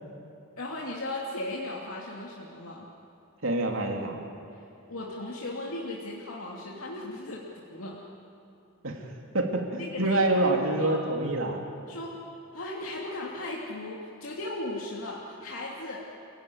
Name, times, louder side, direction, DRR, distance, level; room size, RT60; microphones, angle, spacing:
voice 1, 0.6-2.9 4.5-8.0 9.8-10.5 10.8-11.0 11.9-12.1 12.5-16.1, left 2 dB, 75° left, -3 dB, 2.7 m, -37 dB
voice 2, 3.4-4.2 8.8-9.0 9.3-11.6, right 2 dB, 65° right, 2 dB, 3.1 m, -26 dB
29.5 x 16.5 x 9.6 m, 2.7 s
head